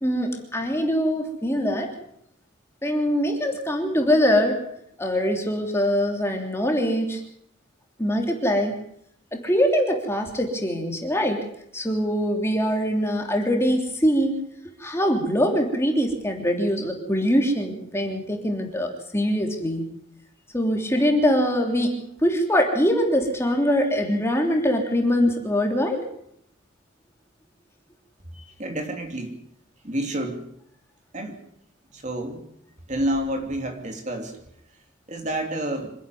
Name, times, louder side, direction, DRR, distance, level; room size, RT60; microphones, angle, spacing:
voice 1, 0.0-1.9 2.8-4.7 5.0-7.2 8.0-8.8 9.3-11.4 11.7-14.4 14.8-19.8 20.5-26.0, equal, 15° left, 2 dB, 3.2 m, -23 dB
voice 2, 28.3-29.4 29.8-30.5 31.1-31.4 31.9-32.4 32.9-34.4 35.1-35.9, right 1 dB, 35° right, 4 dB, 2.8 m, -29 dB
26.0 x 11.0 x 9.4 m, 0.72 s
head